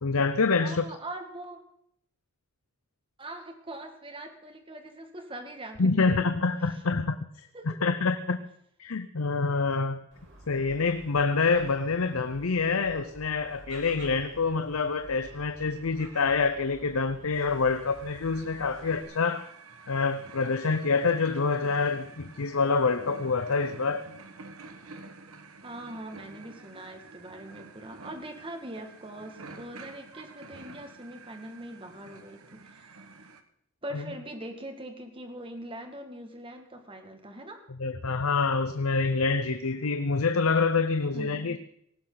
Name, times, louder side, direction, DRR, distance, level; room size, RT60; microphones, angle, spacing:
voice 1, 0.0-0.9 5.8-8.4 8.8-10.0 10.5-19.5 19.9-24.1 33.9-34.0 37.7-41.6, left 4 dB, 75° left, 0.7 m, -26 dB
voice 2, 0.6-1.6 3.2-6.1 7.5-7.9 25.6-33.1 33.8-37.6 41.1-41.6, right 1 dB, 25° right, 2.1 m, -42 dB
Gull seagull, 10.1-19.0, right 1 dB, 60° right, 4.9 m, -50 dB
sound 1, 17.3-33.4, right 3 dB, 80° right, 1.5 m, -49 dB
18.5 x 15.0 x 4.0 m
head